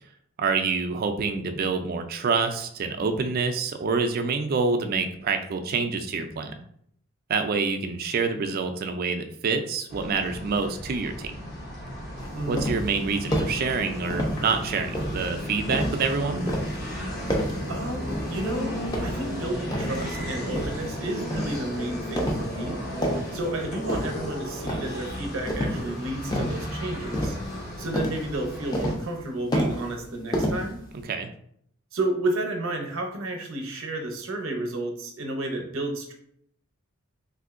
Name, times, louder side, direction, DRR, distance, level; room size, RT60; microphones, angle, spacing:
voice 1, 0.4-6.5 7.3-11.3 12.5-16.4 31.1-31.3, right 4 dB, 45° right, 6 dB, 0.3 m, -27 dB
sound 1, 9.9-28.9, equal, 50° left, 0.9 m, -34 dB
sound 2, 12.2-13.0 13.3-13.6 14.1-14.5 14.9-16.1 16.5-16.8 17.3-17.7 18.1-18.5 18.9-20.0 20.5-20.9 21.3-21.6 22.2-22.6 22.9-23.4 23.9-24.3 24.7-25.1 25.5-25.9 26.3-26.7 27.1-27.7 27.9-28.3 28.7-29.2 29.5-30.0 30.3-31.0, equal, 20° left, 0.5 m, -29 dB
voice 2, 12.3-12.8 17.7-18.8 19.0-22.8 23.3-27.4 27.8-30.8 31.9-36.1, right 1 dB, 70° right, 3 dB, 0.7 m, -31 dB
3.5 x 2.6 x 2.5 m, 0.68 s
head